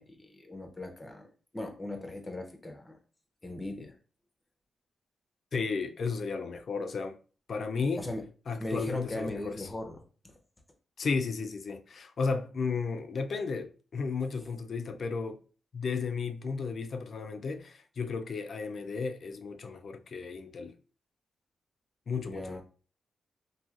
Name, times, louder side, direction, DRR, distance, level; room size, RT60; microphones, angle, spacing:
voice 1, 0.0-3.0 3.4-3.9 8.0-8.2 8.6-10.3 22.3-22.6, left 2 dB, 20° left, 0.7 m, -38 dB
voice 2, 5.5-7.2 7.5-8.1 8.5-9.7 11.0-15.4 15.7-20.7 22.1-22.6, left 4 dB, 60° left, 0.4 m, -34 dB
2.9 x 2.7 x 2.4 m
cardioid pair, 90°, 0 cm